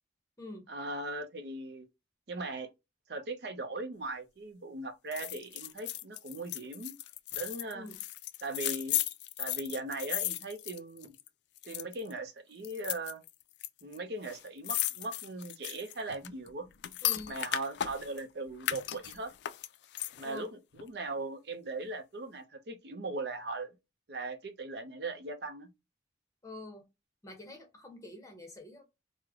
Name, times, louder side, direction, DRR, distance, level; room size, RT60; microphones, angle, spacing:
voice 1, 0.7-1.9 2.3-2.7 3.1-7.0 7.3-7.9 8.4-9.0 9.4-11.1 11.6-13.2 13.8-16.7 17.3-19.3 20.2-23.8 24.1-25.7, right 2 dB, 60° right, 0.5 m, -39 dB
sound 1, 5.1-11.3 11.6-12.1 12.6-13.7 13.9-14.0 14.2-18.2 18.6-20.4 20.8-20.9, left 13 dB, 70° left, 0.3 m, -36 dB
voice 2, 17.0-17.3 20.2-20.5 26.4-26.9 27.2-28.8, left 2 dB, 15° left, 0.8 m, -46 dB
3.1 x 2.0 x 3.5 m
head